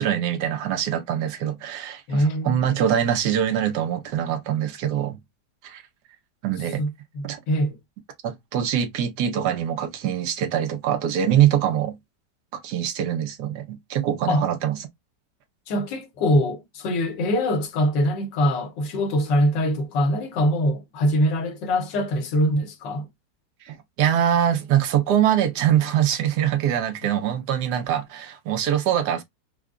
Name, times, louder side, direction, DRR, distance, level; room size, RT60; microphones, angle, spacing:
voice 1, 0.0-5.2 5.6-5.8 6.4-6.8 7.2-7.4 8.2-11.9 12.6-14.8 23.7-29.2, right 10 dB, 75° right, 1.2 m, -23 dB
voice 2, 2.1-2.8 6.8-7.8 14.3-14.5 15.7-23.1, equal, 85° left, 1.5 m, -23 dB
4.8 x 2.1 x 2.3 m
omnidirectional pair, 1.9 m